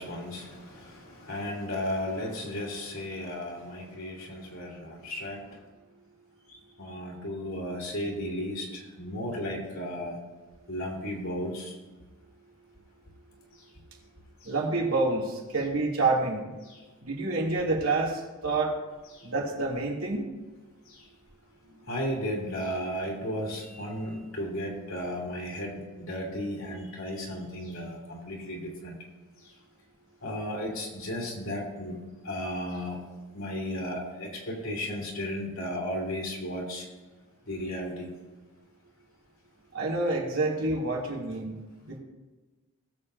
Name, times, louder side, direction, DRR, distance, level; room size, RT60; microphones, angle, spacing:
voice 1, 0.0-5.6 6.5-10.2 10.7-11.8 13.5-13.6 14.4-14.5 16.6-16.8 19.1-19.3 20.9-21.1 21.9-28.9 29.4-29.5 30.2-33.0 33.3-36.9 37.5-38.1, equal, 70° left, -2 dB, 2.8 m, -35 dB
voice 2, 14.4-16.5 17.0-18.8 19.2-20.3 39.7-41.6 41.8-42.0, right 3 dB, 85° right, -3 dB, 2.7 m, -28 dB
19.5 x 7.6 x 2.7 m, 1.2 s
head